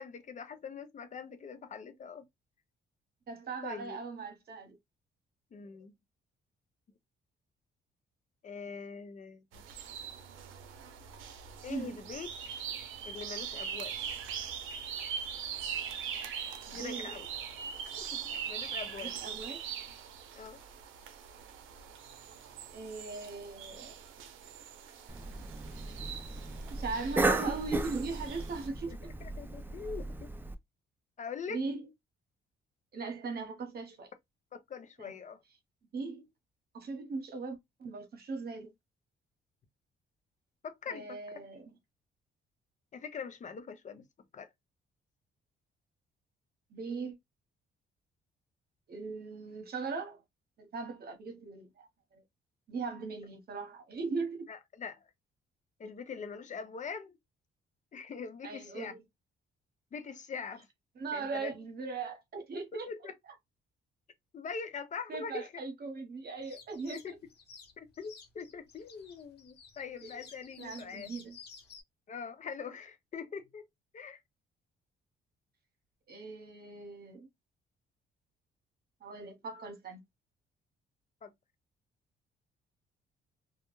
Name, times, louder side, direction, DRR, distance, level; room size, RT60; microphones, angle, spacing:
voice 1, 0.0-2.2 3.6-4.0 5.5-5.9 8.4-9.4 11.6-12.3 13.0-13.9 16.7-17.3 18.0-19.1 20.3-20.6 28.9-30.3 31.2-31.6 34.5-35.4 40.6-41.2 42.9-44.0 44.3-44.5 54.5-55.1 55.8-57.1 57.9-58.9 59.9-60.7 61.1-61.5 62.7-63.2 64.3-65.6 66.9-67.1 67.8-71.1 72.1-73.7 73.9-74.2 81.2-81.3, left 5 dB, 40° left, 0.6 m, -43 dB
voice 2, 3.3-4.8 11.7-12.0 16.7-17.1 18.9-19.6 22.7-23.9 26.7-29.1 31.5-31.8 32.9-34.1 35.0-35.1 35.9-36.3 36.7-38.7 40.9-41.7 46.7-47.2 48.9-50.2 50.6-51.9 52.1-52.2 52.7-54.5 58.4-59.0 61.0-62.9 65.1-67.2 70.6-71.4 76.1-77.3 79.0-80.0, right 4 dB, 50° right, 1.0 m, -39 dB
sound 1, 9.5-28.7, right 7 dB, 85° right, 0.5 m, -42 dB
Cough, 25.1-30.5, right 2 dB, 10° right, 0.4 m, -35 dB
sound 2, 66.4-71.8, left 6 dB, 55° left, 0.9 m, -53 dB
2.3 x 2.1 x 3.0 m
cardioid pair, 90°, 20 cm